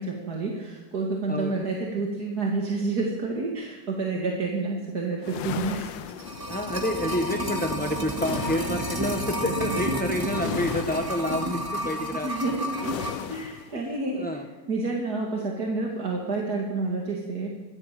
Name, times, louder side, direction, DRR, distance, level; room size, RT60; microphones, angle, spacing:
voice 1, 0.0-5.9 7.0-7.2 8.3-8.4 10.8-11.1 12.0-13.0 13.3-14.4 14.7-17.5, right 3 dB, 55° right, -1 dB, 2.7 m, -29 dB
sound 1, 5.2-6.8 8.1-9.1 10.3-11.4 12.8-13.7, left 10 dB, 75° left, 1.5 m, -36 dB
sound 2, 6.1-13.3 13.6-13.7, equal, 10° right, 2.6 m, -31 dB
voice 2, 6.5-12.3 13.7-14.4, left 1 dB, 5° left, 3 dB, 0.7 m, -29 dB
23.0 x 15.5 x 7.6 m, 1.3 s
omnidirectional pair, 2.1 m